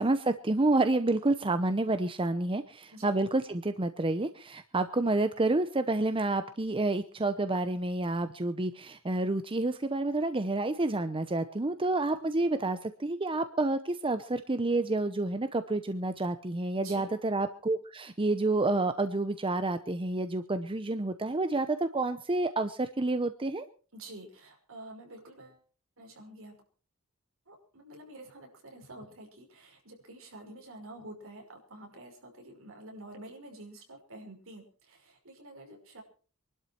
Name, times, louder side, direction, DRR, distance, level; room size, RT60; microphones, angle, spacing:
voice 1, 0.0-23.6, right 2 dB, 25° right, 10 dB, 0.8 m, -29 dB
voice 2, 23.9-25.6 26.0-26.6 27.5-36.0, right 1 dB, 65° right, 2 dB, 5.8 m, -48 dB
24.0 x 12.0 x 4.6 m, 0.39 s
head